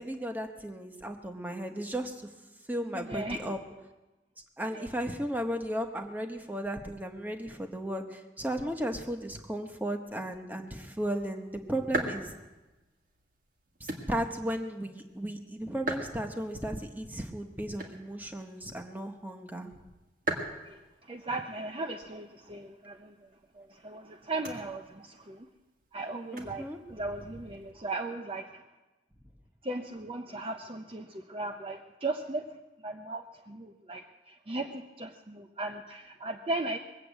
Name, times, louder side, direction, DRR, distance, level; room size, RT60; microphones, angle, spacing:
voice 1, 0.0-2.2 2.7-3.6 4.6-12.3 13.8-19.7 26.3-26.8, right 1 dB, 10° right, 5 dB, 1.0 m, -35 dB
voice 2, 2.9-3.6 4.7-4.9 20.7-23.3 23.5-25.5 25.9-28.6 29.6-32.5 32.8-36.8, right 2 dB, 30° right, 5 dB, 0.6 m, -37 dB
sound 1, 10.7-27.7, right 1 dB, 50° right, 1.9 m, -43 dB
21.5 x 7.5 x 8.2 m, 1.1 s
head